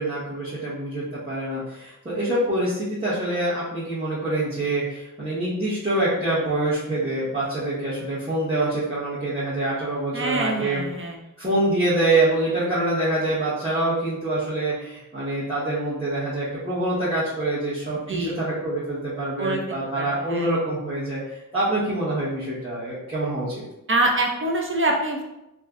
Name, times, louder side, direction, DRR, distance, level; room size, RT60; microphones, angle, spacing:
voice 1, 0.0-10.8 11.4-23.6, right 2 dB, 20° right, -12 dB, 0.9 m, -25 dB
voice 2, 10.1-11.2 18.1-18.4 19.4-20.5 23.9-25.2, right 2 dB, 40° right, 1 dB, 0.4 m, -25 dB
2.4 x 2.1 x 3.5 m, 0.90 s
wide cardioid pair, 90°, 32 cm